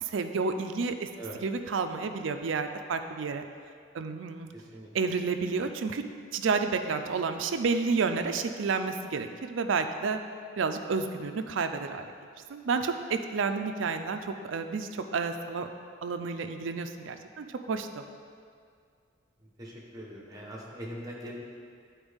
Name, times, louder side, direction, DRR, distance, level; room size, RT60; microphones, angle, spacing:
voice 1, 0.0-1.1 1.4-3.4 3.9-4.5 4.9-6.0 6.3-10.2 10.6-12.1 12.5-15.7 16.0-18.0, right 4 dB, 80° right, 7 dB, 0.4 m, -30 dB
voice 2, 4.5-5.1 19.6-21.4, equal, 20° right, -3 dB, 1.1 m, -42 dB
10.5 x 4.4 x 3.5 m, 2.2 s
head